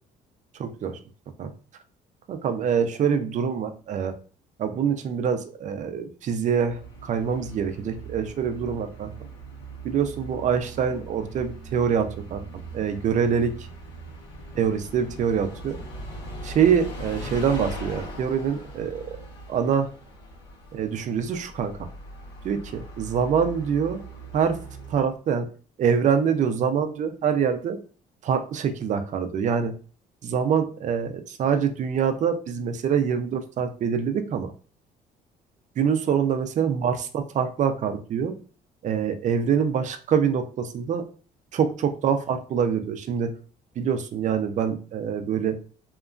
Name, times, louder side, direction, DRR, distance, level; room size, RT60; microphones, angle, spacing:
voice 1, 0.6-1.0 1.4-1.5 2.3-4.1 4.6-9.1 9.8-12.4 12.7-13.5 14.5-15.8 16.4-19.2 19.5-19.9 20.7-21.7 22.4-24.0 24.3-24.6 24.9-25.5 25.8-27.8 28.2-29.7 30.2-34.5 35.8-38.3 38.8-41.0 41.5-43.3 43.8-45.6, right 7 dB, 45° right, 8 dB, 0.5 m, -25 dB
Bus, 6.6-25.2, right 2 dB, 90° left, 1.2 m, -40 dB
2.9 x 2.3 x 2.4 m, 0.38 s
cardioid pair, 110°, 17 cm